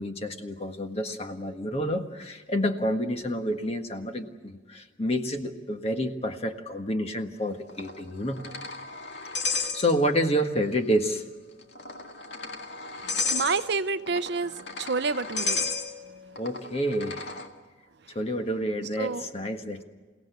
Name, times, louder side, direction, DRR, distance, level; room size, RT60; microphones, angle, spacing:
voice 1, 0.0-8.4 9.4-11.2 16.4-17.3 18.1-19.8, equal, 30° left, 5 dB, 1.5 m, -29 dB
sound 1, 7.7-10.3 10.6-10.7 11.6-17.5, left 4 dB, 60° left, 1.9 m, -33 dB
voice 2, 13.3-14.5 14.8-15.6 19.0-19.2, right 4 dB, 60° right, 13 dB, 0.7 m, -28 dB
29.0 x 17.0 x 8.2 m, 1.4 s
head